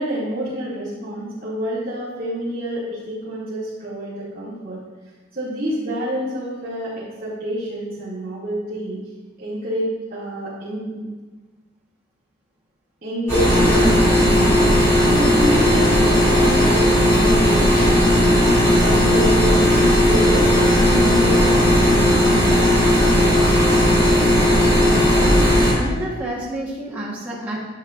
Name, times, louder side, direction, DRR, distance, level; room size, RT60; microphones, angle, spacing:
voice 1, 0.0-4.8 5.3-9.0 9.4-11.1 13.0-19.7 20.1-23.4, equal, 40° right, -14 dB, 2.4 m, -28 dB
sound 1, 13.3-25.7, equal, 15° left, 2.6 m, -16 dB
voice 2, 24.6-25.4 25.7-27.6, equal, 5° right, -7 dB, 1.3 m, -29 dB
10.0 x 7.4 x 2.5 m, 1.3 s
head